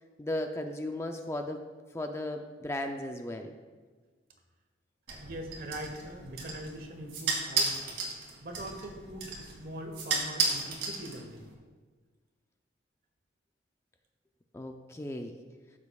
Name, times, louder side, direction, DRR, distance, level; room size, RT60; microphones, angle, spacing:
voice 1, 0.2-1.6 1.9-3.5 14.5-15.3, left 1 dB, 15° left, 5 dB, 0.4 m, -35 dB
sound 1, 5.1-11.5, right 4 dB, 75° right, 2.0 m, -34 dB
voice 2, 5.2-7.9 8.4-11.5, right 1 dB, 50° right, 4 dB, 1.1 m, -42 dB
13.5 x 7.2 x 2.3 m, 1.4 s
head